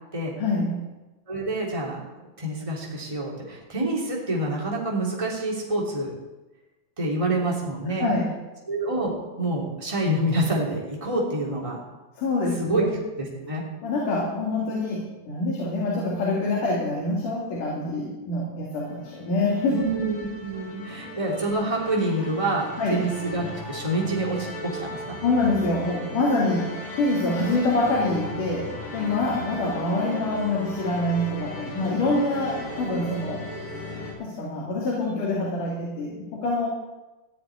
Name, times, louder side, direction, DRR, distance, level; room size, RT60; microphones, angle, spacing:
voice 1, 0.4-0.8 8.0-8.3 12.2-12.9 13.8-19.8 22.8-23.0 25.2-33.5 34.2-36.7, left 2 dB, 90° left, -4 dB, 4.0 m, -25 dB
voice 2, 1.3-6.1 7.0-8.1 8.7-11.8 12.6-12.8 13.1-13.6 19.7-25.2, right 1 dB, 10° right, -3 dB, 2.9 m, -27 dB
sound 1, 18.7-34.1, left 1 dB, 45° left, 5.1 m, -37 dB
15.0 x 6.6 x 9.9 m, 1.1 s
omnidirectional pair, 3.5 m